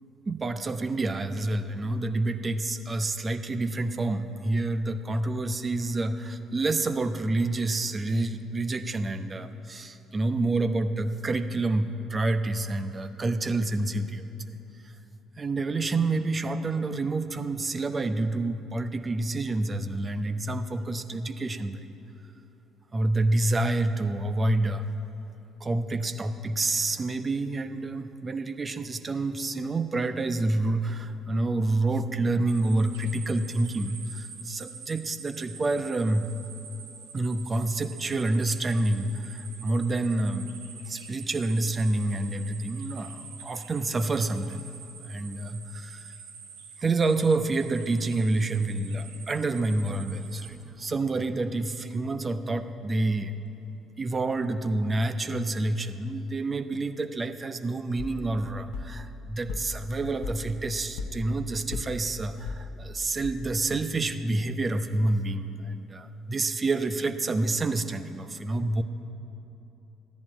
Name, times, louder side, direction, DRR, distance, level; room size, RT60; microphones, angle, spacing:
voice 1, 0.3-14.6 14.8-14.9 15.4-21.9 22.9-24.9 25.6-36.3 37.1-40.5 40.8-44.6 45.0-46.2 46.8-53.3 54.0-68.8, right 2 dB, 30° right, 9 dB, 0.9 m, -28 dB
sound 1, 32.5-50.5, right 6 dB, 75° right, 1.4 m, -46 dB
sound 2, 58.0-63.8, left 3 dB, 65° left, 0.9 m, -38 dB
14.0 x 11.0 x 9.0 m, 3.0 s
figure-of-eight pair, 50°, 0 cm